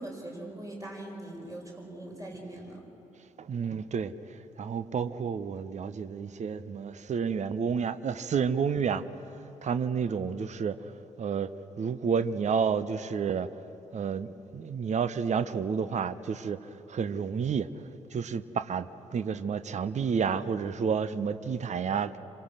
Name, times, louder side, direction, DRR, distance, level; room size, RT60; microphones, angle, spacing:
voice 1, 0.0-2.8, right 1 dB, 20° right, -1 dB, 7.4 m, -41 dB
voice 2, 3.4-4.1 4.6-9.0 9.6-10.8 11.2-11.5 11.8-13.5 13.9-16.6 16.9-17.7 18.1-22.2, right 6 dB, 45° right, 13 dB, 1.0 m, -30 dB
28.5 x 26.0 x 6.6 m, 2.9 s
figure-of-eight pair, 40°, 17 cm